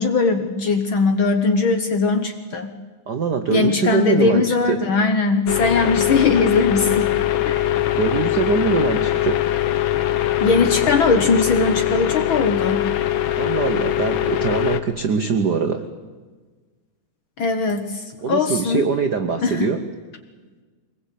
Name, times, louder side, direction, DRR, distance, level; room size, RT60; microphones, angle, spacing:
voice 1, 0.0-2.8 3.5-7.1 7.4-7.6 10.4-12.9 17.4-18.9 19.4-19.7, left 4 dB, 55° left, 7 dB, 1.5 m, -20 dB
voice 2, 3.1-4.8 8.0-9.4 13.3-15.9 18.2-19.8, right 5 dB, 70° right, 8 dB, 0.9 m, -22 dB
sound 1, 5.5-14.8, left 13 dB, 90° left, 1.1 m, -22 dB
24.0 x 20.5 x 8.5 m, 1.4 s
omnidirectional pair, 3.5 m